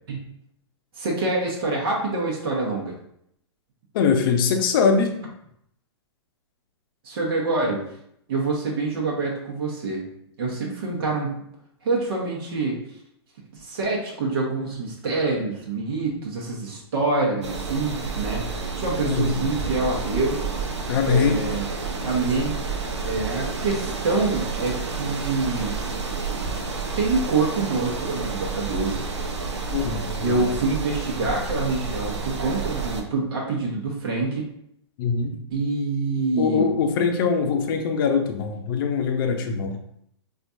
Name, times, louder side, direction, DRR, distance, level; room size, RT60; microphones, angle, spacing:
voice 1, 0.9-3.0 7.0-7.8 8.3-10.0 10.4-11.4 11.8-12.8 13.5-18.4 18.7-20.4 21.0-21.7 22.0-22.6 23.0-25.8 27.0-29.0 30.2-34.5 35.5-36.6, right 3 dB, 60° right, -3 dB, 1.0 m, -26 dB
voice 2, 3.9-5.1 19.0-19.3 20.9-21.4 29.7-30.5 35.0-35.3 36.4-39.7, left 5 dB, 50° left, 5 dB, 0.6 m, -22 dB
sound 1, 17.4-33.0, right 4 dB, 85° right, 0.7 m, -30 dB
4.4 x 2.4 x 2.6 m, 0.72 s
hypercardioid pair, 115°, 14 cm